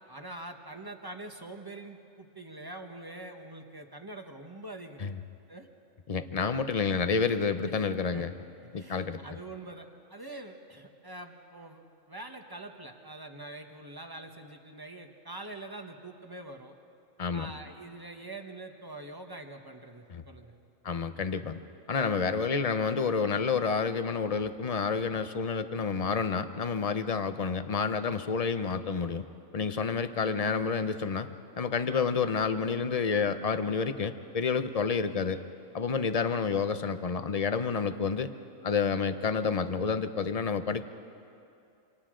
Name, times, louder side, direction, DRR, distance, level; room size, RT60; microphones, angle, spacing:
voice 1, 0.1-5.2 5.5-5.7 6.8-7.1 8.1-8.3 8.6-16.7 17.3-21.0, right 2 dB, 20° right, 4 dB, 1.1 m, -45 dB
voice 2, 6.1-8.3 8.7-9.2 17.2-17.5 20.1-20.2 20.8-21.6 21.9-29.3 29.5-31.3 31.6-35.4 35.7-38.3 38.6-40.8, left 5 dB, 40° left, 10 dB, 0.6 m, -29 dB
28.0 x 26.5 x 3.8 m, 2.6 s
omnidirectional pair, 1.4 m